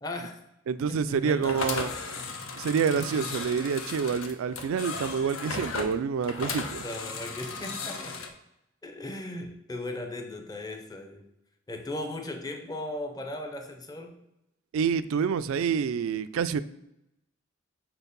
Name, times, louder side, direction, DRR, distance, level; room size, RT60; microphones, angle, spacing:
voice 1, 0.0-0.4 0.9-1.9 2.9-3.3 6.8-8.2 8.8-11.2 11.7-14.2, left 1 dB, 20° left, 0.6 m, -37 dB
voice 2, 0.7-1.9 2.6-6.8 14.7-16.6, right 6 dB, 80° right, 0.3 m, -27 dB
sound 1, 1.4-8.3, left 4 dB, 75° left, 0.7 m, -36 dB
4.5 x 4.5 x 5.2 m
head